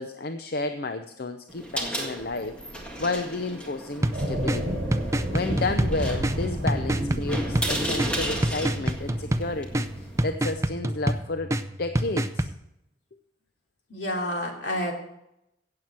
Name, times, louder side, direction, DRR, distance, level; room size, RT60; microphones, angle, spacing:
voice 1, 0.0-4.8 5.3-12.5, left 3 dB, 60° left, 8 dB, 0.7 m, -32 dB
sound 1, 1.5-10.2, right 1 dB, 5° left, 1.8 m, -35 dB
sound 2, 4.0-12.5, right 1 dB, 15° right, 0.5 m, -28 dB
sound 3, 4.1-10.3, right 1 dB, 35° right, 5.7 m, -32 dB
voice 2, 13.9-14.9, left 1 dB, 80° left, 1 dB, 2.9 m, -29 dB
16.5 x 7.8 x 4.4 m, 0.83 s
head